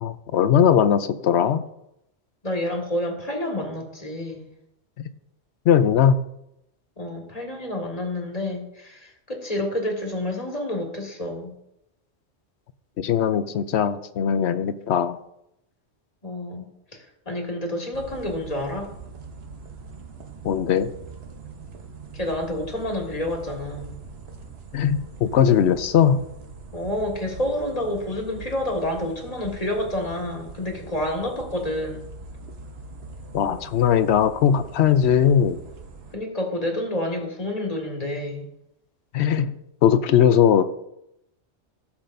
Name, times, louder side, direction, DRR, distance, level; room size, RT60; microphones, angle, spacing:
voice 1, 0.0-1.6 5.0-5.1 5.7-6.2 13.0-15.2 20.4-20.9 24.7-26.2 33.3-35.6 39.1-39.5 39.8-40.6, left 8 dB, 70° left, 12 dB, 0.9 m, -19 dB
voice 2, 2.4-4.5 7.0-11.5 16.2-16.7 17.3-18.9 22.1-23.9 26.7-32.1 36.1-38.5, left 1 dB, 35° left, 1 dB, 1.9 m, -29 dB
sound 1, 17.9-36.2, right 3 dB, 60° right, 1.2 m, -42 dB
16.0 x 7.2 x 2.6 m, 0.82 s
omnidirectional pair, 1.2 m